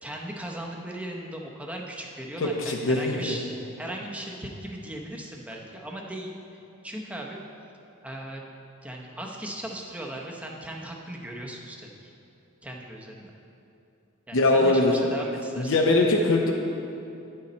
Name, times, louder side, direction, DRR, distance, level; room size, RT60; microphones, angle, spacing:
voice 1, 0.0-6.3 6.8-7.4 8.0-8.4 8.8-11.9 12.6-13.3 14.3-15.8, right 1 dB, 5° right, -1 dB, 0.7 m, -38 dB
voice 2, 2.4-3.4 14.3-14.9 15.6-16.5, left 2 dB, 60° left, 1 dB, 0.7 m, -22 dB
9.7 x 6.7 x 4.2 m, 2.7 s
head